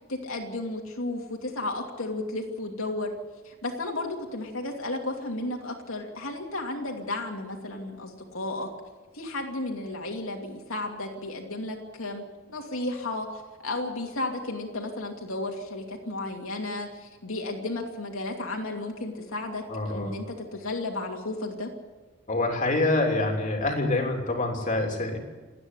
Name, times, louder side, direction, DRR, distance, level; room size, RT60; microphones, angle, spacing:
voice 1, 0.1-3.1 3.4-8.7 9.1-21.7, left 2 dB, 75° left, 1 dB, 2.7 m, -33 dB
voice 2, 19.7-20.1 22.3-25.2, left 2 dB, 35° left, 2 dB, 3.2 m, -26 dB
28.0 x 9.7 x 9.8 m, 1.3 s
head